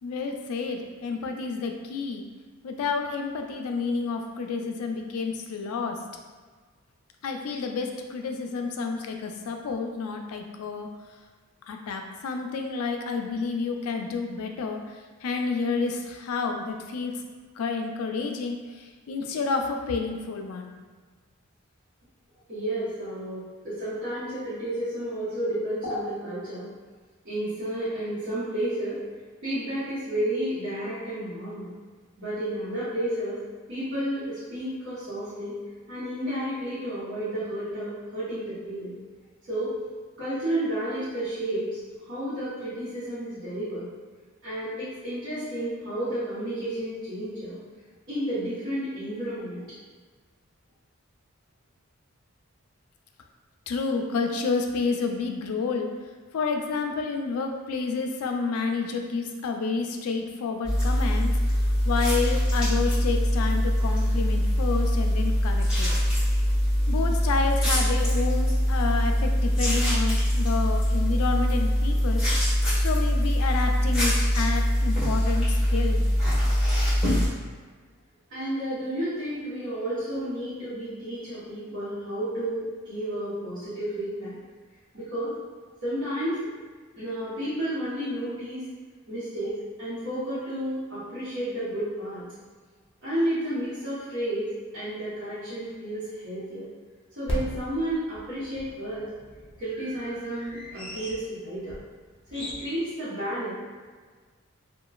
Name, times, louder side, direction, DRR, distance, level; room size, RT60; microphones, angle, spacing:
voice 1, 0.0-2.2 2.6-6.0 7.2-10.9 11.7-17.1 17.6-20.7 53.7-55.9 56.3-65.9 66.9-72.2 72.8-76.1, left 4 dB, 90° left, 3 dB, 0.3 m, -30 dB
voice 2, 22.5-26.7 27.2-29.0 29.4-31.7 32.2-33.4 33.7-35.6 35.9-38.9 39.5-39.7 40.2-43.9 44.4-47.6 48.1-49.6 78.3-84.4 84.9-85.3 85.8-86.4 86.9-88.7 89.1-92.2 93.0-96.6 97.2-99.1 99.6-101.7 102.3-103.5, right 1 dB, 55° right, -14 dB, 1.0 m, -31 dB
sound 1, 60.6-77.3, equal, 5° right, 1.3 m, -23 dB
sound 2, 92.8-92.9 93.6-93.7 93.9-94.0 97.3-102.6, equal, 25° left, 0.5 m, -37 dB
2.9 x 2.2 x 2.3 m, 1.5 s
head